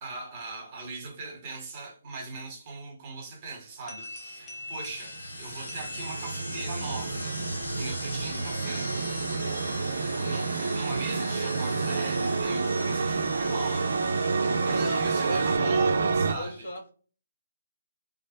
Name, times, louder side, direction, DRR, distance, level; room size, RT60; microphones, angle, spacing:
voice 1, 0.0-7.4 7.8-8.9 10.0-13.9 14.6-16.7, right 3 dB, 30° right, 1.0 m, -39 dB
sound 1, 3.9-6.8, left 2 dB, 15° left, 0.5 m, -43 dB
sound 2, 4.0-15.6, left 2 dB, 75° left, 0.6 m, -41 dB
sound 3, 4.8-16.3, right 4 dB, 65° right, 0.4 m, -29 dB
voice 2, 14.4-14.9 15.2-15.8 16.4-16.9, equal, 55° left, 1.1 m, -38 dB
2.4 x 2.0 x 2.6 m
figure-of-eight pair, 150°, 0 cm